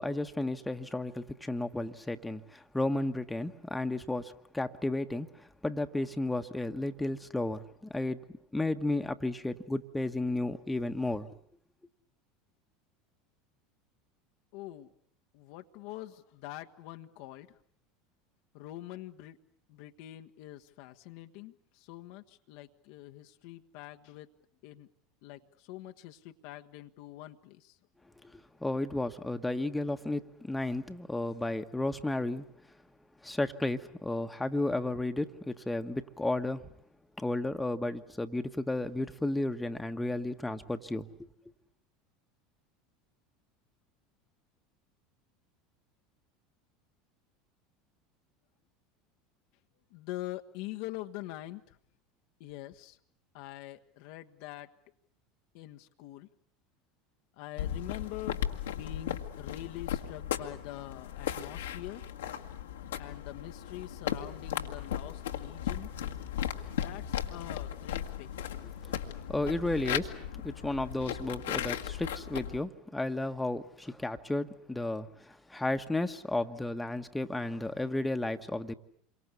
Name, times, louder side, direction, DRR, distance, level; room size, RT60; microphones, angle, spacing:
voice 1, 0.0-7.6 7.9-8.2 8.5-11.3 28.3-32.4 33.2-36.6 37.2-41.1 69.3-70.1 70.4-78.7, left 2 dB, 10° left, 6 dB, 1.4 m, -33 dB
voice 2, 14.5-14.9 15.3-17.5 18.5-19.4 19.7-24.3 24.6-24.9 25.2-27.7 49.9-51.8 52.4-53.0 53.3-54.7 55.5-56.3 57.4-58.4 58.7-62.0 63.0-65.9 66.7-68.3, left 15 dB, 60° left, 6 dB, 1.2 m, -44 dB
sound 1, 57.6-72.6, left 10 dB, 75° left, 1.7 m, -36 dB
28.0 x 24.0 x 8.3 m, 0.66 s
figure-of-eight pair, 75°, 0 cm